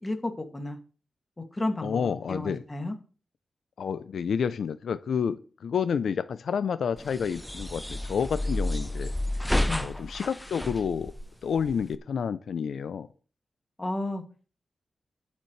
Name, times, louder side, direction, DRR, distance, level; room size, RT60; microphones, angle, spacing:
voice 1, 0.0-0.8 1.5-2.9 9.7-9.9 13.8-14.2, left 2 dB, 20° left, 4 dB, 2.2 m, -32 dB
voice 2, 1.8-2.6 3.8-9.1 9.8-11.1 11.4-13.1, left 7 dB, 80° left, 13 dB, 0.5 m, -29 dB
sound 1, 7.0-12.0, left 1 dB, 5° left, 0.7 m, -31 dB
21.0 x 7.3 x 3.2 m, 0.38 s
wide cardioid pair, 105°, 0 cm